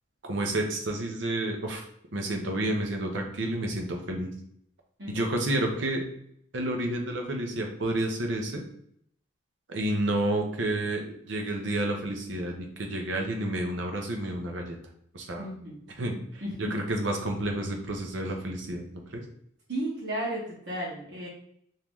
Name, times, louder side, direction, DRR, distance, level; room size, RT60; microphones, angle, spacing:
voice 1, 0.2-1.8 2.1-4.3 5.1-6.0 6.5-8.6 9.7-14.8 15.1-15.5 16.0-18.9 19.1-19.2, right 1 dB, 85° right, 2 dB, 0.8 m, -30 dB
voice 2, 15.4-15.7 16.4-16.7 19.7-21.3, right 1 dB, 60° right, -6 dB, 1.0 m, -33 dB
3.0 x 2.8 x 3.6 m, 0.69 s
head